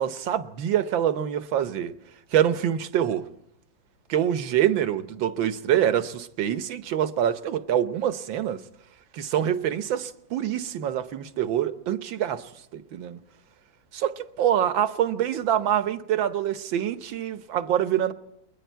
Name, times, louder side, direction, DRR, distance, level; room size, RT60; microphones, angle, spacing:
voice 1, 0.0-1.9 2.3-3.3 4.1-8.6 9.1-13.2 13.9-18.1, right 10 dB, 80° right, 1.7 m, -25 dB
29.0 x 21.5 x 4.5 m
omnidirectional pair, 2.1 m